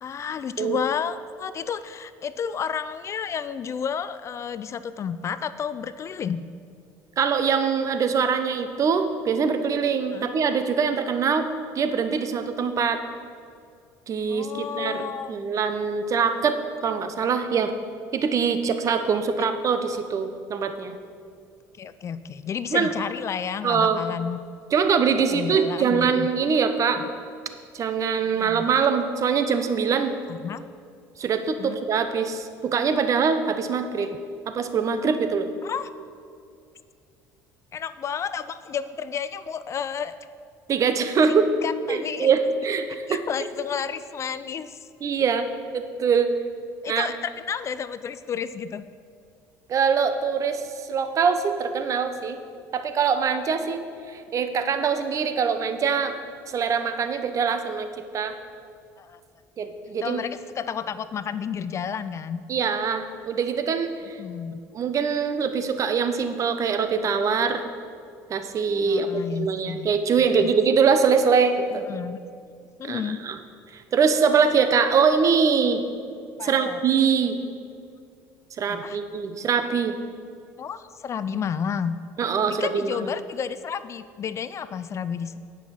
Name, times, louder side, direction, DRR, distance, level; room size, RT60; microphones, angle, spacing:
voice 1, 0.0-6.5 10.1-10.3 14.3-15.4 19.4-19.5 21.8-24.4 25.3-26.3 28.4-28.7 30.3-30.6 31.6-31.8 34.0-34.2 35.6-35.9 37.7-40.1 41.6-42.3 43.1-44.8 46.8-48.8 59.0-59.2 60.0-62.4 64.2-64.6 68.8-69.9 70.2-70.5 71.7-72.2 72.8-73.2 76.4-76.8 78.7-79.0 80.6-82.0 82.5-85.4, left 7 dB, 40° left, 14 dB, 0.4 m, -31 dB
voice 2, 7.2-11.5 11.7-13.0 14.1-16.6 16.8-17.7 18.1-21.0 22.7-22.9 23.6-24.0 24.7-27.0 27.7-30.2 31.2-34.1 34.5-35.5 40.7-41.5 41.9-43.2 45.0-45.5 45.7-46.3 46.9-47.1 49.7-52.4 52.7-56.2 56.5-57.9 58.1-58.4 59.6-60.2 62.5-64.2 64.7-67.6 68.3-71.9 72.8-73.4 73.7-75.8 76.4-77.4 78.6-80.0 82.2-83.0, right 6 dB, 45° right, 9 dB, 0.8 m, -23 dB
9.6 x 5.7 x 6.1 m, 2.3 s
supercardioid pair, 85°, 8 cm